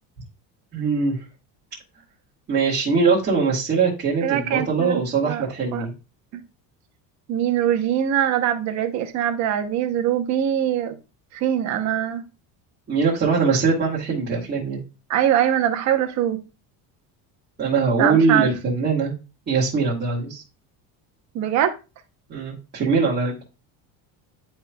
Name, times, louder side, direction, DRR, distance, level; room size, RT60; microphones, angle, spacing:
voice 1, 0.7-1.2 2.5-5.9 12.9-14.8 17.6-19.1 19.5-20.4 22.3-23.3, right 4 dB, 25° right, 1.7 m, -21 dB
voice 2, 4.2-5.4 5.7-5.9 7.3-10.9 11.3-12.2 15.1-16.4 18.0-18.5 21.3-21.8, right 10 dB, 45° right, 0.9 m, -22 dB
10.5 x 4.4 x 2.3 m
cardioid pair, 175°, 41 cm